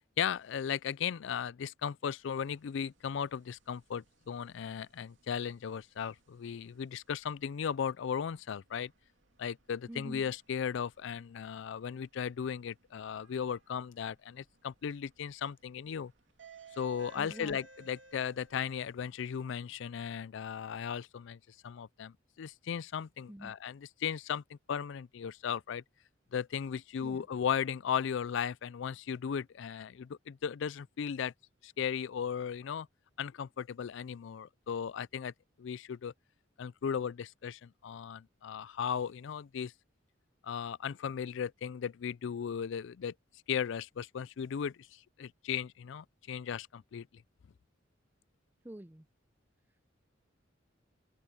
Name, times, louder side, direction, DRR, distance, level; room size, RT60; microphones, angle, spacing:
voice 1, 0.2-8.9 9.4-16.1 16.8-21.4 21.6-25.8 26.3-31.3 31.6-32.9 33.2-35.3 35.6-36.1 36.6-39.7 40.4-43.1 43.5-47.1, left 7 dB, 70° left, 0.4 m, -36 dB
sound 1, 2.2-18.7, right 4 dB, 70° right, 2.8 m, -62 dB
voice 2, 9.9-10.2 17.2-17.6 23.3-23.5 27.0-27.2 48.6-49.0, right 1 dB, 10° right, 0.6 m, -46 dB
open air
head